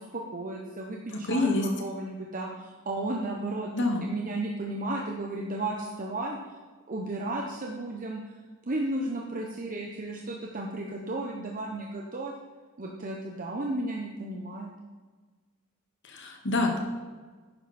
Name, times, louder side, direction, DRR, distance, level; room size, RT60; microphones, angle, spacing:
voice 1, 0.0-6.4 6.9-8.3 8.7-12.3 12.8-14.7, right 2 dB, 40° right, 0 dB, 1.1 m, -34 dB
voice 2, 1.1-1.7 3.7-4.1 16.0-16.8, left 2 dB, 60° left, 2 dB, 2.1 m, -27 dB
11.0 x 10.0 x 4.4 m, 1.4 s
head